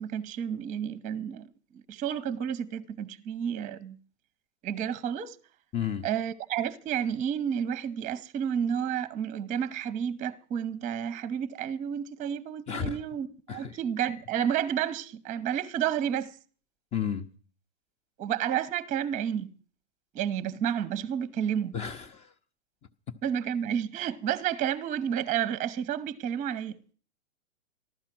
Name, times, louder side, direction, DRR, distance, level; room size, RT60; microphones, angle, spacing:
voice 1, 0.0-1.5 1.9-4.0 4.6-5.4 6.0-16.3 18.2-19.5 20.1-21.8 23.2-26.8, right 9 dB, 20° right, 0.9 m, -31 dB
voice 2, 5.7-6.1 12.7-13.0 13.5-13.8 16.9-17.3 21.7-22.3, left 8 dB, 15° left, 0.9 m, -32 dB
14.5 x 12.0 x 6.1 m
hypercardioid pair, 120°, 37 cm